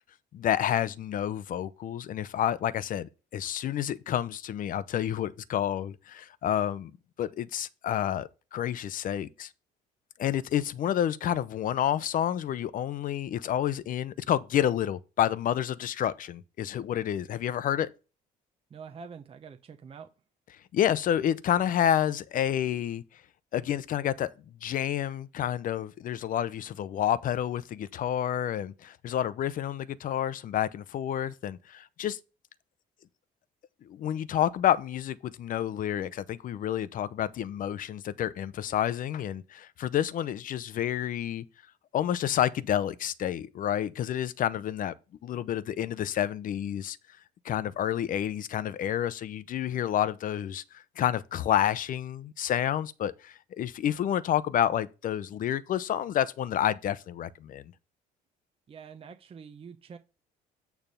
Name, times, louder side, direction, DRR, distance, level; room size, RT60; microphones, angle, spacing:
voice 1, 0.3-6.9 7.2-9.5 10.2-17.9 20.7-23.0 23.5-24.3 24.6-32.2 33.8-41.4 41.9-44.9 45.2-47.0 47.4-57.6, left 10 dB, 55° left, 0.7 m, -29 dB
voice 2, 18.7-20.1 58.7-60.0, right 6 dB, 35° right, 0.8 m, -46 dB
9.1 x 3.4 x 5.6 m
cardioid pair, 110°, 17 cm